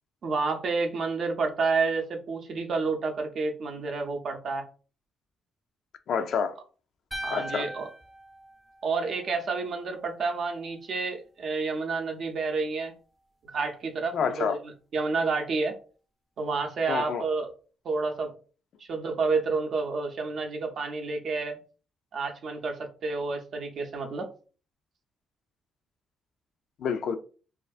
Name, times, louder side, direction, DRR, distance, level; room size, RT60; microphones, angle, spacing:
voice 1, 0.2-4.6 7.2-7.9 8.8-12.9 13.4-15.8 16.4-17.5 17.8-18.3 18.9-21.6 22.1-24.3, right 4 dB, 60° right, 0.5 m, -29 dB
voice 2, 6.1-6.6 7.3-7.7 14.1-14.6 16.9-17.2 26.8-27.2, left 6 dB, 70° left, 0.3 m, -28 dB
sound 1, 7.1-9.4, equal, ahead, 0.4 m, -39 dB
2.4 x 2.3 x 2.3 m
cardioid pair, 90°, 0 cm